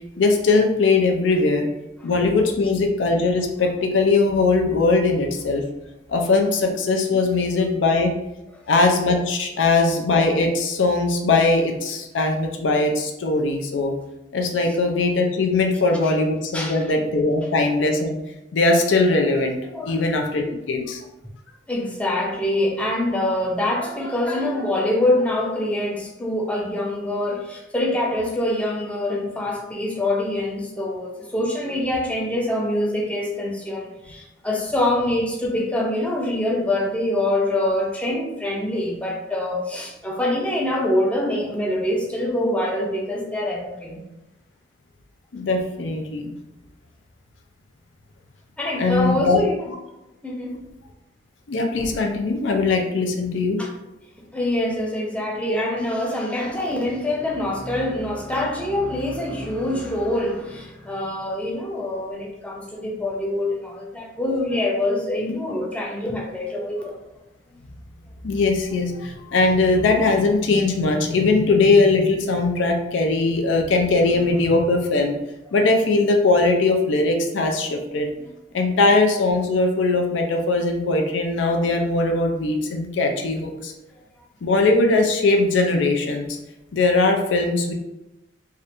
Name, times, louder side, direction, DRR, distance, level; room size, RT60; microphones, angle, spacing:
voice 1, 0.2-1.7 2.0-5.6 6.1-8.1 8.7-13.9 14.3-18.2 18.5-19.6 19.9-21.0 45.3-46.3 48.8-49.4 51.5-53.6 68.2-75.1 75.5-78.1 78.5-83.7 84.4-86.3 86.7-87.7, left 3 dB, 85° left, 3 dB, 0.5 m, -20 dB
voice 2, 16.5-16.9 19.7-20.0 21.7-44.0 48.6-49.7 50.2-50.6 53.6-53.7 54.3-67.0, left 1 dB, 5° left, -1 dB, 0.5 m, -25 dB
3.2 x 2.5 x 2.9 m, 0.94 s
head